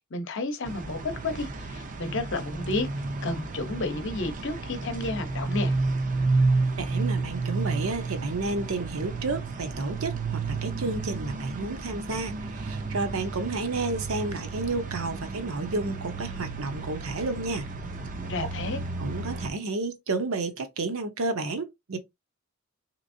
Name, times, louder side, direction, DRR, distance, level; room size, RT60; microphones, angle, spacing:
voice 1, 0.1-2.9 3.2-5.7 18.3-18.8, left 2 dB, 55° left, 0.8 m, -31 dB
sound 1, 0.6-19.5, right 3 dB, 35° right, 0.5 m, -31 dB
voice 2, 6.8-17.7 19.0-22.0, right 3 dB, 70° right, 0.7 m, -31 dB
3.5 x 2.9 x 2.6 m
head